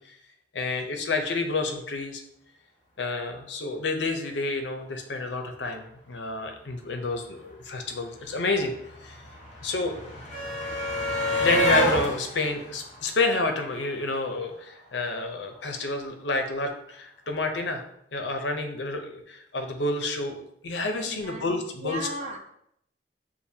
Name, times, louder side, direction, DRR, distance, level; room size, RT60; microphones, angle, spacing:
voice 1, 0.5-2.2 3.0-8.7 9.0-9.2 9.6-9.9 11.4-17.8 18.1-22.1, left 3 dB, 75° left, 4 dB, 0.7 m, -29 dB
sound 1, 7.5-7.6 7.8-14.0 15.2-15.3 15.6-15.7, equal, 40° left, 1.1 m, -29 dB
voice 2, 21.1-21.5 21.8-22.4, equal, 35° right, 2 dB, 0.6 m, -35 dB
6.6 x 2.6 x 2.7 m, 0.74 s
head